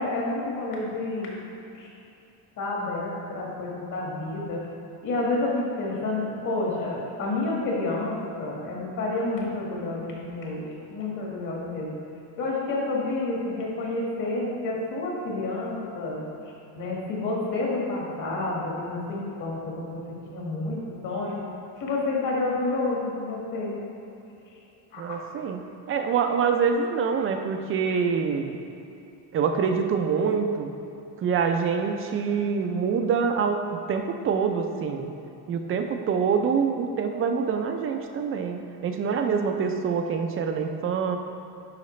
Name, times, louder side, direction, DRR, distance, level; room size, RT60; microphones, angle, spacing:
voice 1, 0.0-1.4 1.7-1.9 2.6-4.6 5.0-11.9 12.4-16.2 16.8-21.4 21.8-23.7 24.9-25.1, left 2 dB, 50° left, -3 dB, 1.7 m, -29 dB
voice 2, 25.0-25.6 25.9-28.6 29.3-30.7 31.2-33.6 33.9-35.1 35.5-41.2, right 6 dB, 35° right, 5 dB, 0.4 m, -25 dB
10.5 x 4.8 x 3.1 m, 2.8 s
cardioid pair, 175°, 42 cm